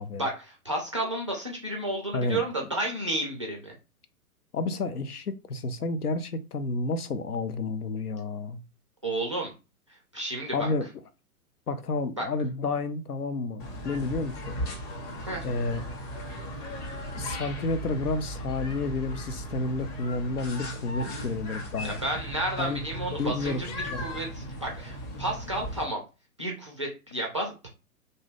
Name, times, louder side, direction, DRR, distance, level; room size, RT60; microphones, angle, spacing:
voice 1, 0.2-3.7 9.0-9.5 9.9-10.7 12.2-12.3 15.3-15.5 21.8-26.0 26.4-27.7, right 1 dB, 25° right, 0.3 m, -32 dB
voice 2, 4.5-8.6 10.5-10.9 11.7-14.6 15.4-15.8 17.2-21.9 22.6-22.8 23.1-23.6 23.9-24.0, left 3 dB, 85° left, 0.6 m, -30 dB
sound 1, 13.6-25.8, equal, 25° left, 0.8 m, -37 dB
2.6 x 2.2 x 3.3 m
figure-of-eight pair, 115°, 44 cm